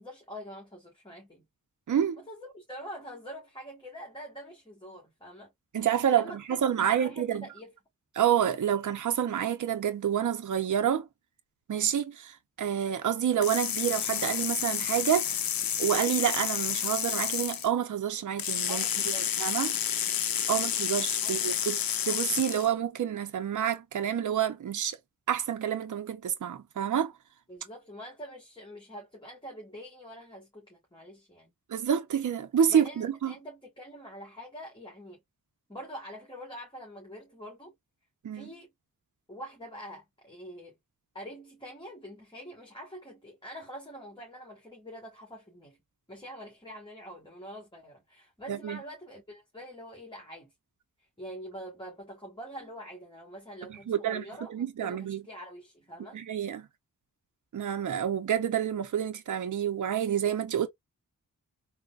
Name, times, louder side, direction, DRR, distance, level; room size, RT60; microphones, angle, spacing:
voice 1, 0.0-1.5 2.2-5.5 6.1-6.4 6.7-7.7 18.7-19.4 21.2-21.3 21.6-21.8 27.5-31.5 32.7-35.2 35.7-37.7 38.3-38.7 39.3-40.8 41.1-45.8 46.1-50.5 51.2-56.2, equal, 15° left, 1.3 m, -45 dB
voice 2, 1.9-2.2 5.7-7.4 8.1-11.1 11.7-15.4 15.8-18.8 19.4-19.8 20.5-21.8 22.1-25.0 25.3-27.1 31.7-33.3 38.2-38.5 48.5-48.8 53.7-55.2 56.1-56.7 57.5-60.7, right 9 dB, 60° right, 0.6 m, -28 dB
sound 1, 13.4-17.7 18.4-22.7, left 9 dB, 85° left, 0.5 m, -30 dB
3.7 x 2.1 x 2.3 m
wide cardioid pair, 80°, 34 cm